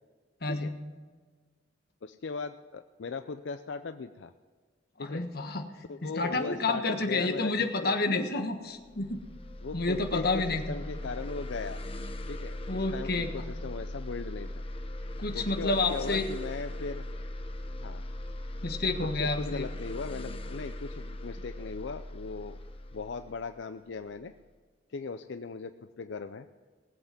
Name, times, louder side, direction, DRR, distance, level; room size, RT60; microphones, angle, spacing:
voice 1, 0.4-0.7 5.0-9.2 9.7-10.8 12.7-13.3 15.2-16.3 18.6-19.6, left 3 dB, 60° left, 6 dB, 1.4 m, -30 dB
voice 2, 2.0-4.3 5.0-5.2 5.9-7.9 9.6-11.8 12.3-14.5 15.3-17.1 17.8-18.0 19.1-22.6 22.9-24.3 24.9-26.5, left 4 dB, 85° left, 9 dB, 0.5 m, -38 dB
sound 1, 8.8-24.2, left 1 dB, 30° left, 0.9 m, -39 dB
19.5 x 8.0 x 6.0 m, 1.5 s
head